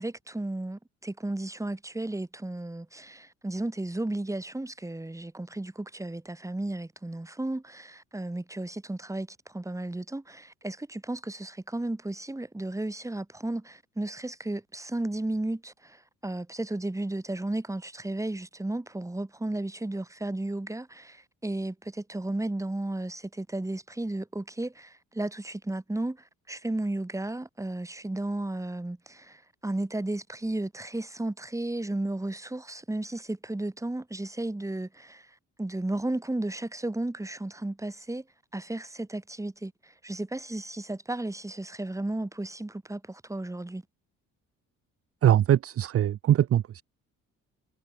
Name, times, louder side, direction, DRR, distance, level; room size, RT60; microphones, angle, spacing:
voice 1, 0.0-38.2 38.5-43.8, right 2 dB, 10° right, 3.7 m, -34 dB
voice 2, 45.2-46.8, right 11 dB, 50° right, 0.7 m, -22 dB
cardioid pair, 90°, 30 cm